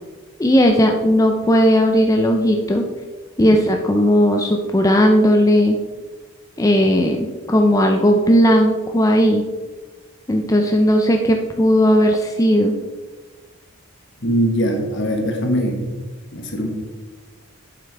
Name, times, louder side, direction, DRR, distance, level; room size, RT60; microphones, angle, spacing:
voice 1, 0.4-2.8 3.4-5.8 6.6-9.4 10.3-12.8, equal, 15° left, 3 dB, 0.4 m, -16 dB
voice 2, 14.2-15.9 16.3-16.7, equal, 60° left, 3 dB, 1.4 m, -21 dB
8.8 x 7.4 x 3.4 m, 1.3 s
head